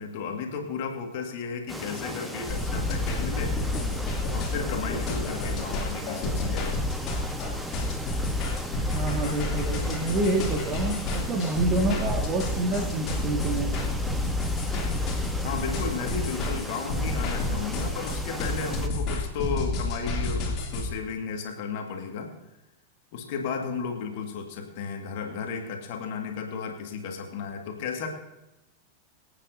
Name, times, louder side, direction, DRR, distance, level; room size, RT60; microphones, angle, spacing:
voice 1, 0.0-3.6 4.3-6.7 14.6-14.9 15.4-22.3 23.1-28.1, left 5 dB, 50° left, 3 dB, 1.8 m, -34 dB
sound 1, 1.7-18.9, equal, 5° right, 1.2 m, -37 dB
sound 2, 2.5-20.9, left 2 dB, 35° left, 2.8 m, -29 dB
voice 2, 8.9-13.7, right 2 dB, 30° right, 3 dB, 1.8 m, -27 dB
24.5 x 8.8 x 2.7 m, 0.96 s
figure-of-eight pair, 90°, 0 cm